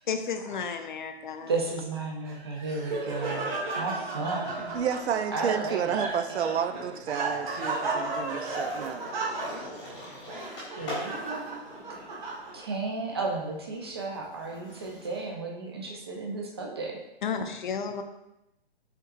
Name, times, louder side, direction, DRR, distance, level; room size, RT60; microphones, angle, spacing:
voice 1, 0.1-1.5 17.2-18.0, left 6 dB, 50° left, 7 dB, 0.5 m, -32 dB
voice 2, 1.4-4.7 5.3-6.0 10.7-11.6 12.0-12.1 12.5-17.0, right 3 dB, 25° right, 0 dB, 0.4 m, -33 dB
Laughter, 2.3-12.8, right 3 dB, 45° right, 1.4 m, -34 dB
Skateboard, 4.1-4.7 5.0-15.3, left 1 dB, 10° left, 1.1 m, -44 dB
voice 3, 4.7-9.1, right 8 dB, 80° right, 9 dB, 0.5 m, -31 dB
5.6 x 3.7 x 2.4 m, 0.91 s
hypercardioid pair, 170°, 32 cm